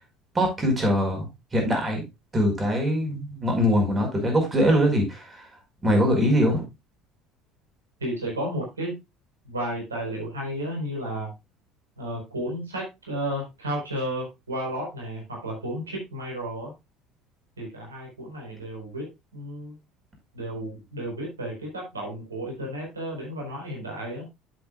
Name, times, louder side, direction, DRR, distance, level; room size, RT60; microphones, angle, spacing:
voice 1, 0.4-1.3 1.5-2.0 2.3-5.4 5.8-6.6, equal, 25° right, 2 dB, 5.1 m, -22 dB
voice 2, 8.0-8.9 9.4-11.3 12.0-16.7 17.6-19.8 20.3-24.3, right 1 dB, 85° right, -2 dB, 4.6 m, -33 dB
11.5 x 8.1 x 2.4 m, 0.22 s
figure-of-eight pair, 65°, 0 cm